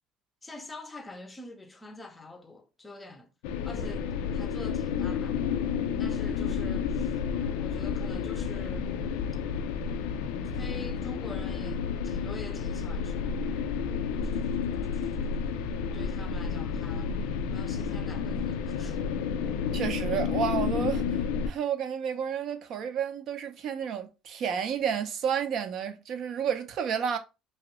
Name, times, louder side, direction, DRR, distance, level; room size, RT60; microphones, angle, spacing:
voice 1, 0.4-3.3 3.6-5.5 6.0-7.2 7.5-8.9 10.4-13.6 14.2-14.6 14.9-17.1 17.5-19.0, left 2 dB, 15° left, 0.6 m, -46 dB
sound 1, 3.4-21.5, left 6 dB, 90° left, 0.3 m, -31 dB
voice 2, 19.7-21.0 21.5-27.2, right 8 dB, 55° right, 0.5 m, -31 dB
3.0 x 2.3 x 2.9 m
cardioid pair, 125°, 0 cm